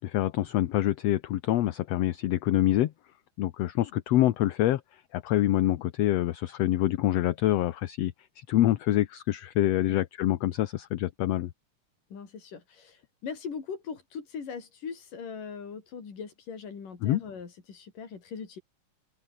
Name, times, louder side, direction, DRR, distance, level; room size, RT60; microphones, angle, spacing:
voice 1, 0.0-2.9 3.4-11.5 17.0-17.2, left 14 dB, 65° left, 1.8 m, -26 dB
voice 2, 12.1-18.6, left 6 dB, 85° left, 5.7 m, -40 dB
omnidirectional pair, 3.7 m